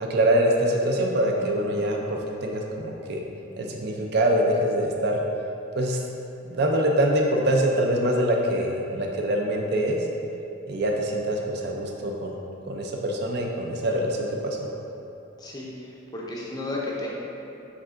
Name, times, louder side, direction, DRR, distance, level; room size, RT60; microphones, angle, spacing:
voice 1, 0.0-3.2 3.6-5.2 5.8-6.0 6.5-10.0 10.7-12.4 12.7-14.6, right 1 dB, 55° right, 0 dB, 0.4 m, -24 dB
voice 2, 15.4-17.1, left 2 dB, 20° left, -4 dB, 0.5 m, -33 dB
4.7 x 3.5 x 2.5 m, 2.9 s
head